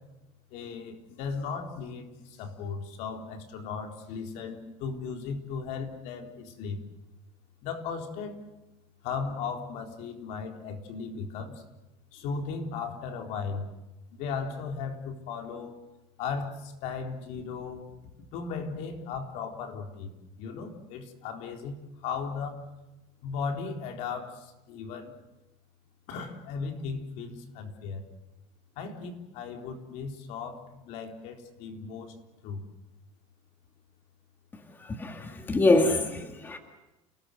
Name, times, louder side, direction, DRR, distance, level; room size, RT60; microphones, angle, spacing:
voice 1, 0.5-6.8 7.6-8.4 9.0-11.6 12.1-13.7 14.1-15.8 16.2-17.8 18.3-22.6 23.2-25.2 26.1-28.0 28.8-32.1 32.4-32.6, left 5 dB, 55° left, 3.9 m, -36 dB
voice 2, 34.8-36.6, left 2 dB, 15° left, 2.0 m, -25 dB
29.5 x 19.5 x 8.0 m
cardioid pair, 155°, 14 cm